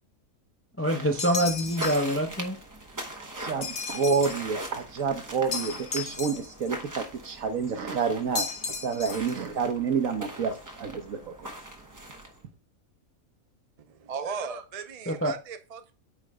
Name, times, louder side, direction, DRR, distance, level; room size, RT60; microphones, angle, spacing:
voice 1, 0.8-2.6 15.1-15.3, equal, 15° left, 0.5 m, -25 dB
sound 1, 0.8-12.4, right 1 dB, 15° right, 0.8 m, -41 dB
sound 2, 1.2-2.2 3.6-4.5 5.5-6.7 8.3-9.4, left 5 dB, 50° left, 1.0 m, -34 dB
voice 2, 3.2-11.5, right 5 dB, 70° right, 1.4 m, -29 dB
voice 3, 13.8-15.9, right 5 dB, 50° right, 0.4 m, -37 dB
8.9 x 3.2 x 4.8 m
omnidirectional pair, 1.5 m